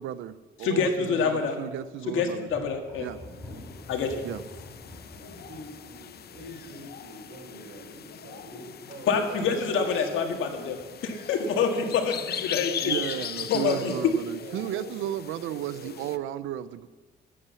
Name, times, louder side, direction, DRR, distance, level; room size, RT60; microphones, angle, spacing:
voice 1, 0.0-2.5 3.0-3.2 4.2-4.4 12.8-16.9, right 12 dB, 85° right, 0.6 m, -34 dB
voice 2, 0.6-1.6 2.1-3.1 3.9-4.2 9.1-12.9 13.5-14.1, left 5 dB, 85° left, 1.9 m, -26 dB
Thunder, 2.5-8.9 9.3-9.8 10.3-11.1, left 1 dB, 10° left, 3.8 m, -48 dB
sound 1, 3.2-16.2, left 9 dB, 55° left, 0.7 m, -39 dB
voice 3, 5.1-10.2 12.8-13.9 14.4-14.9 15.4-15.9, right 1 dB, 60° right, 4.9 m, -45 dB
12.0 x 8.6 x 6.9 m
cardioid pair, 90°, 20 cm